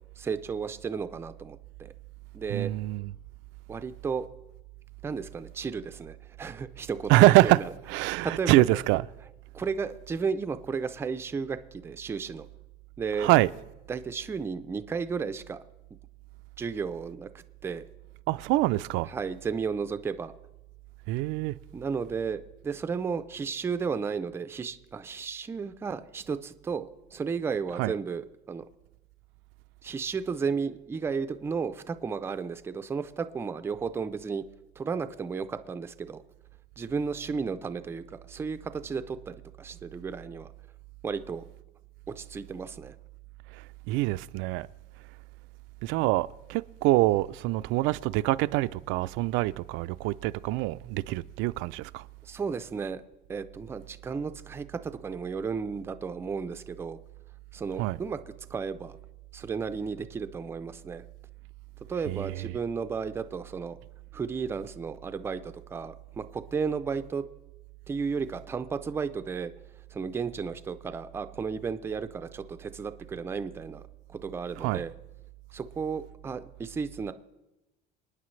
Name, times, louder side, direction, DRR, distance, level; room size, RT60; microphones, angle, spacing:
voice 1, 0.2-1.9 2.3-2.7 3.7-4.3 5.0-7.6 8.2-8.8 9.5-12.5 13.0-13.3 13.9-15.6 16.6-17.8 19.1-20.3 21.7-28.6 29.8-34.4 34.8-36.2 36.8-40.5 41.0-41.4 42.2-43.0 52.2-53.0 53.3-57.0 57.5-58.2 58.5-59.0 59.3-61.0 61.9-63.8 64.1-67.2 67.9-69.5 69.9-73.8 74.1-74.9 75.5-77.1, right 5 dB, 15° right, 0.4 m, -33 dB
voice 2, 2.5-3.1 7.1-9.1 13.1-13.5 18.3-19.1 21.1-21.6 27.7-27.9 43.5-44.7 45.8-52.1 57.7-58.0 62.0-62.5 74.5-74.9, right 18 dB, 85° right, 0.4 m, -25 dB
27.5 x 9.7 x 3.2 m
cardioid pair, 175°, 19 cm